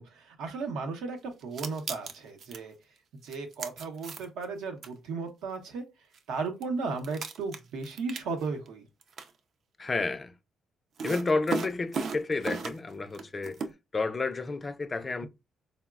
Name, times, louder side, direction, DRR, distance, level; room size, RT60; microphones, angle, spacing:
voice 1, 0.2-2.7 3.2-5.8 6.3-8.8, right 4 dB, 90° right, 0.7 m, -35 dB
sound 1, 1.4-2.6 3.3-4.4 4.8-4.9 6.1-6.2 6.6-6.7 7.0-8.7 9.0-9.3 11.0-12.9 13.1-13.7, right 5 dB, 60° right, 0.4 m, -36 dB
voice 2, 9.8-10.3 11.0-13.6 13.9-15.3, left 3 dB, 30° left, 0.3 m, -30 dB
3.8 x 2.0 x 2.3 m
cardioid pair, 90°, 0 cm